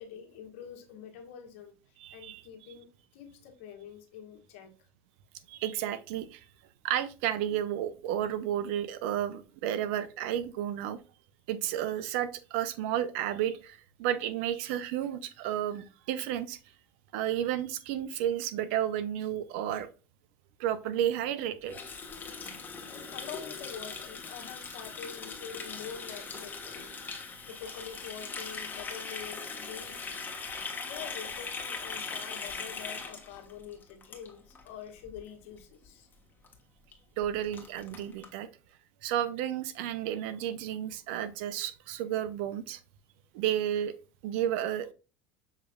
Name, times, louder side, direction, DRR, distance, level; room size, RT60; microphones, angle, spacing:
voice 1, 0.0-1.8 2.1-4.7 22.8-26.9 27.4-30.3 30.8-36.1, left 8 dB, 80° left, 1.3 m, -46 dB
voice 2, 2.0-2.4 5.5-6.4 6.8-11.0 11.5-16.6 17.1-19.9 20.6-21.7 27.1-27.2 37.2-38.5 39.0-42.8 43.3-43.9 44.2-44.9, right 11 dB, 75° right, 0.6 m, -32 dB
Water tap faucet, 21.7-34.7 35.0-35.2 35.5-35.9 36.1-36.2 36.4-36.5 36.9-37.0 37.2-38.3, left 5 dB, 25° left, 1.3 m, -40 dB
6.6 x 3.2 x 2.3 m
supercardioid pair, 100°, 7 cm